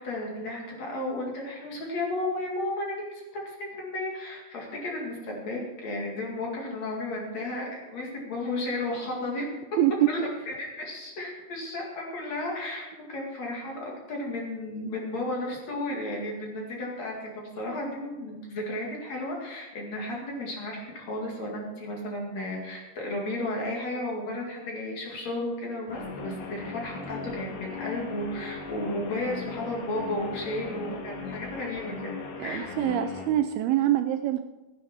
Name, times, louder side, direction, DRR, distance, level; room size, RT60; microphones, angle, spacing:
voice 1, 0.0-9.5 10.1-32.7, left 1 dB, 45° left, -1 dB, 2.9 m, -33 dB
voice 2, 9.8-10.1 32.4-34.4, right 12 dB, 80° right, 7 dB, 2.3 m, -24 dB
Guitar, 25.9-33.3, left 5 dB, 70° left, 3.5 m, -38 dB
16.0 x 9.7 x 4.3 m, 1.1 s
omnidirectional pair, 4.8 m